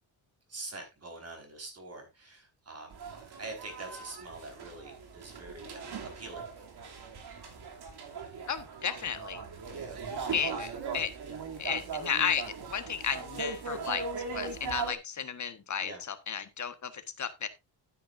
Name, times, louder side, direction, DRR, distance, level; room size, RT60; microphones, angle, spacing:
voice 1, 0.5-3.0 3.3-6.5 9.7-10.0 15.8-16.0, right 2 dB, 30° right, 4 dB, 4.7 m, -45 dB
sound 1, 2.9-14.9, right 5 dB, 55° right, 2.9 m, -39 dB
voice 2, 8.5-9.4 10.3-11.1 11.6-14.0 14.3-17.5, left 7 dB, 40° left, 10 dB, 1.4 m, -33 dB
12.0 x 9.5 x 2.6 m, 0.23 s
cardioid pair, 130°, 45 cm